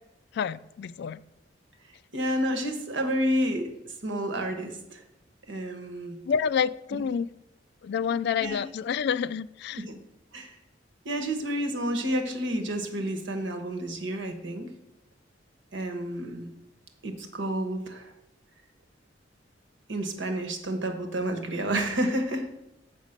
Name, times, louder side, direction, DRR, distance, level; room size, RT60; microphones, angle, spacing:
voice 1, 0.3-1.2 6.3-7.3 7.8-9.8, left 7 dB, 60° left, 18 dB, 0.3 m, -28 dB
voice 2, 2.1-3.7 4.0-5.0 5.5-6.2 6.9-7.0 8.4-8.6 9.9-10.0 10.3-10.6 11.0-14.7 15.7-16.5 17.0-18.1 19.9-22.5, right 1 dB, 70° right, 4 dB, 1.2 m, -30 dB
7.2 x 5.2 x 6.6 m, 0.90 s
head